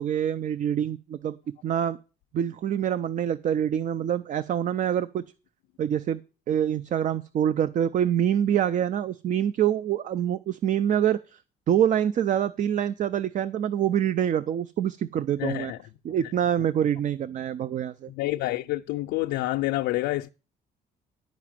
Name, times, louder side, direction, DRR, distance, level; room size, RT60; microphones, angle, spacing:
voice 1, 0.0-1.4 1.6-2.0 2.3-5.2 5.8-6.2 6.5-11.4 11.7-15.7 16.0-18.1, right 9 dB, 50° right, 0.5 m, -25 dB
voice 2, 15.4-15.8 18.1-20.3, left 17 dB, 90° left, 0.5 m, -28 dB
10.5 x 5.1 x 7.4 m
cardioid pair, 110°, 17 cm